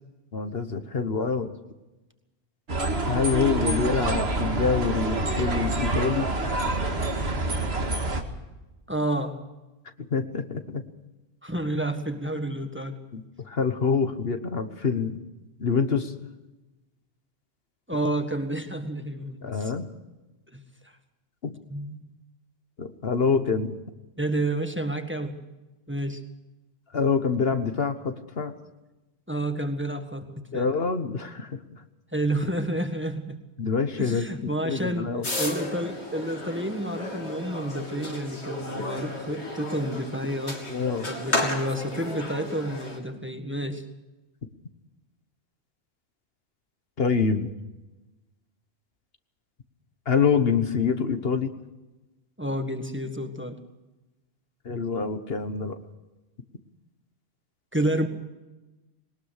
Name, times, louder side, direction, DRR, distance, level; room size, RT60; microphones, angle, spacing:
voice 1, 0.3-1.5 3.0-6.3 10.1-10.8 13.1-15.2 15.6-16.1 19.4-19.9 21.4-21.6 22.8-23.8 26.9-28.5 30.5-31.8 33.6-35.3 38.7-38.8 40.7-41.1 47.0-47.5 50.1-51.5 54.6-55.8, left 5 dB, 65° left, 8 dB, 1.5 m, -26 dB
sound 1, 2.7-8.2, right 2 dB, 70° right, 2.2 m, -27 dB
voice 2, 8.9-9.4 11.4-13.0 17.9-19.7 20.5-20.6 21.7-22.1 24.2-25.5 25.9-26.2 29.3-30.2 30.5-30.7 32.1-33.4 34.0-35.1 35.4-40.6 41.1-43.8 52.4-53.6 57.7-58.1, right 1 dB, 10° right, 6 dB, 1.7 m, -30 dB
sound 2, 35.2-43.0, left 1 dB, 80° left, 3.6 m, -33 dB
21.0 x 19.5 x 6.5 m, 1.1 s
omnidirectional pair, 1.1 m